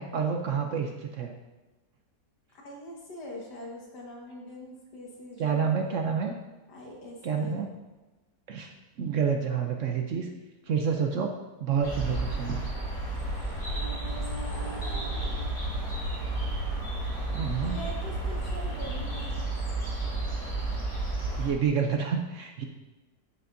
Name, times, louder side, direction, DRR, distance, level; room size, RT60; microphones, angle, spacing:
voice 1, 0.0-1.3 5.4-6.3 7.2-7.7 8.5-10.3 10.7-11.3 11.6-12.6 17.3-17.8 21.3-22.6, right 6 dB, 60° right, 3 dB, 0.8 m, -28 dB
voice 2, 2.5-6.0 6.7-7.7 13.7-15.5 17.6-19.5, equal, 85° left, -2 dB, 2.2 m, -43 dB
sound 1, 11.8-21.5, right 2 dB, 30° left, 2.6 m, -32 dB
8.2 x 7.8 x 2.7 m, 1.1 s
omnidirectional pair, 1.7 m